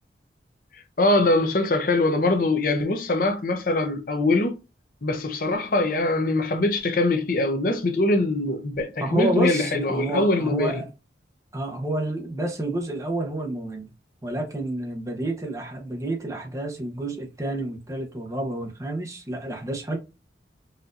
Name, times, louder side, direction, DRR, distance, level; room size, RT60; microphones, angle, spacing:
voice 1, 1.0-4.6 5.0-10.8, left 2 dB, 50° left, 0.6 m, -23 dB
voice 2, 9.0-10.9 11.5-13.9 14.2-20.0, right 1 dB, 20° right, 0.7 m, -29 dB
4.2 x 2.6 x 2.4 m
head